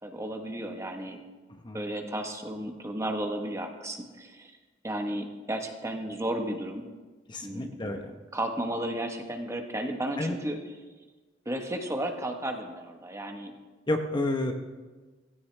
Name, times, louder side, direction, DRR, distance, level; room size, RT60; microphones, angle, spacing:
voice 1, 0.0-1.2 1.7-4.5 4.8-6.9 7.4-8.0 8.3-10.6 11.4-13.5, right 1 dB, 15° right, 4 dB, 1.2 m, -33 dB
voice 2, 7.3-8.1 10.2-10.4 13.9-14.5, left 2 dB, 25° left, 4 dB, 0.9 m, -30 dB
16.5 x 16.0 x 3.3 m, 1.3 s
head